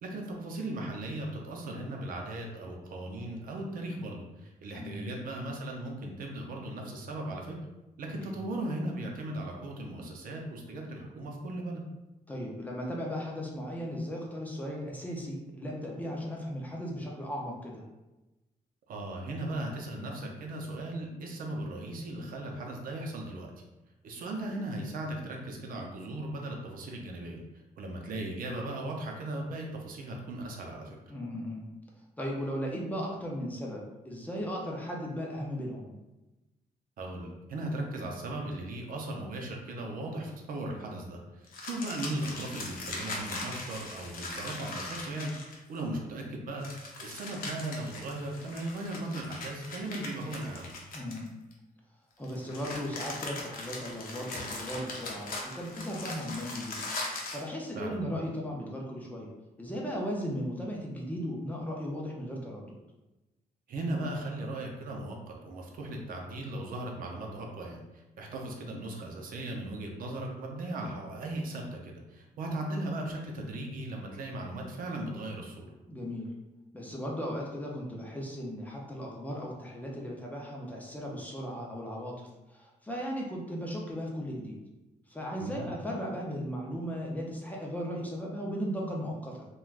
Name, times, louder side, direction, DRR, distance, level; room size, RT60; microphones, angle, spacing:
voice 1, 0.0-7.6 8.0-11.8 18.9-23.5 24.0-27.4 27.8-31.0 37.0-45.3 45.7-46.7 47.0-50.7 57.7-58.0 63.7-75.7 85.4-85.7, right 1 dB, 75° right, 0 dB, 0.5 m, -37 dB
voice 2, 4.8-5.1 8.3-8.4 12.3-17.8 31.1-31.7 32.2-35.9 50.9-51.4 52.2-59.3 59.6-62.8 75.9-76.3 76.7-84.6 85.1-89.5, equal, 10° left, -2 dB, 0.4 m, -36 dB
sound 1, 41.5-45.8 46.6-51.5 52.2-57.5, left 2 dB, 80° left, 0.6 m, -40 dB
3.2 x 2.2 x 2.4 m, 1.0 s
wide cardioid pair, 145°, 15 cm